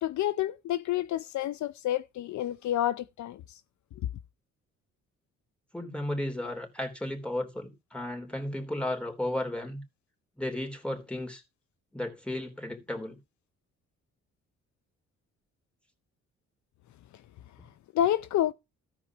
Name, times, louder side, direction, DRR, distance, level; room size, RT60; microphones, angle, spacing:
voice 1, 0.0-3.6 17.9-18.5, left 12 dB, 70° left, 0.7 m, -29 dB
voice 2, 5.7-9.8 10.4-11.4 11.9-13.2, left 1 dB, 5° left, 3.3 m, -34 dB
14.0 x 5.0 x 6.0 m
cardioid pair, 90°, 30 cm